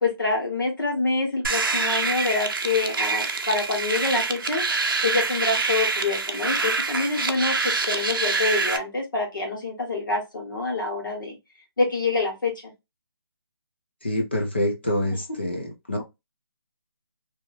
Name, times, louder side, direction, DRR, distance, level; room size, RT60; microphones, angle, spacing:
voice 1, 0.0-4.6 5.0-11.4 11.8-12.7, left 3 dB, 50° left, 1.5 m, -26 dB
sound 1, 1.4-8.8, right 4 dB, 55° right, 0.6 m, -26 dB
voice 2, 14.0-16.0, left 1 dB, 25° left, 0.4 m, -26 dB
3.0 x 2.7 x 2.5 m
hypercardioid pair, 180°, 13 cm